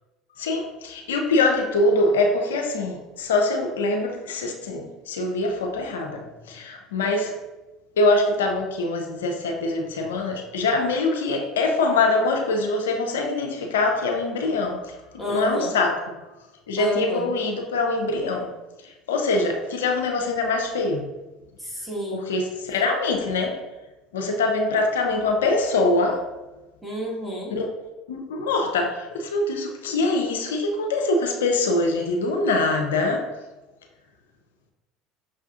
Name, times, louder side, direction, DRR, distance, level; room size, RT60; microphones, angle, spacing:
voice 1, 0.4-7.3 8.0-14.9 15.3-16.0 16.7-18.5 19.1-21.1 22.1-23.6 24.1-26.2 27.6-27.7 28.1-33.3, left 2 dB, 85° left, 3 dB, 0.5 m, -23 dB
voice 2, 15.2-15.8 16.8-17.4 21.6-22.3 26.8-27.5, equal, 10° right, -3 dB, 1.4 m, -29 dB
6.1 x 2.4 x 2.4 m, 1.1 s
hypercardioid pair, 75°, 0 cm